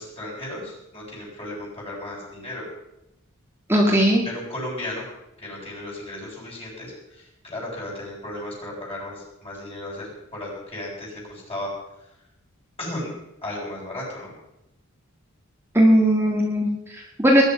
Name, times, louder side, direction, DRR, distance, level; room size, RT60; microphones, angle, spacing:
voice 1, 0.0-2.7 4.2-5.0 5.4-11.7 12.0-12.2 12.8-13.1 13.4-14.3, left 1 dB, 30° left, -3 dB, 7.7 m, -35 dB
voice 2, 3.7-4.2 15.7-17.4, equal, 10° right, -2 dB, 2.0 m, -18 dB
20.5 x 11.0 x 5.7 m, 0.88 s
head